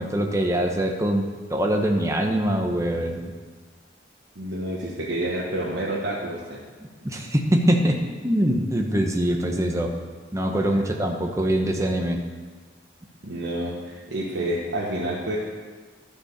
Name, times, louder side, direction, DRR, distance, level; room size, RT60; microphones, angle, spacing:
voice 1, 0.0-3.3 7.0-8.0 8.2-9.9 10.3-12.2, right 1 dB, 15° right, 2 dB, 0.9 m, -23 dB
voice 2, 4.3-6.6 10.5-10.7 13.2-15.4, right 1 dB, 75° right, -6 dB, 1.4 m, -29 dB
12.0 x 5.2 x 6.7 m, 1.4 s
head